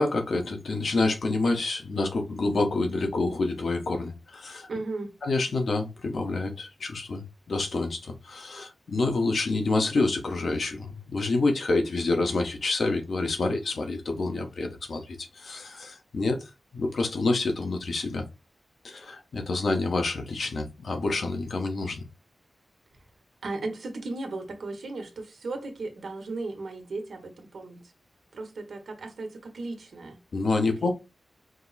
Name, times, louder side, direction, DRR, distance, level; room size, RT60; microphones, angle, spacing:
voice 1, 0.0-4.7 5.2-18.3 18.8-22.0 30.3-30.9, left 3 dB, 70° left, 1.1 m, -28 dB
voice 2, 4.7-5.1 23.4-27.8 28.3-30.2 30.8-30.9, right 3 dB, 80° right, 1.3 m, -36 dB
5.2 x 2.1 x 4.0 m
wide cardioid pair, 140°, 0 cm